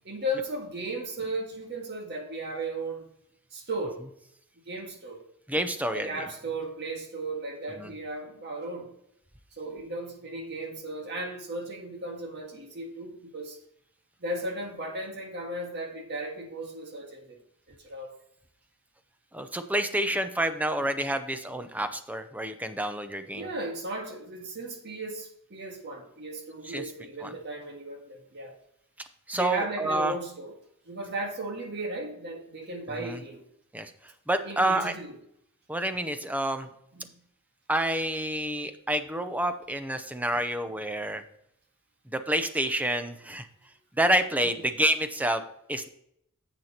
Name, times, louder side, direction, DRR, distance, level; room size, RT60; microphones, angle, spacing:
voice 1, 0.0-3.1 3.5-4.0 4.6-5.2 5.9-8.9 9.5-13.6 14.2-17.4 17.7-18.1 20.1-20.2 20.8-21.2 23.3-28.5 29.3-30.5 30.8-33.4 34.4-35.2 36.9-37.1 44.4-44.5, right 1 dB, 50° right, 2 dB, 1.7 m, -36 dB
voice 2, 5.5-6.3 7.8-7.9 19.3-23.5 26.6-26.8 27.2-27.3 29.3-30.2 33.0-33.2 33.7-33.9 34.3-34.9 35.7-36.7 37.7-41.2 42.1-43.5 43.9-45.4 45.7-45.9, right 1 dB, 5° right, 9 dB, 0.6 m, -28 dB
10.5 x 8.0 x 2.9 m, 0.74 s
head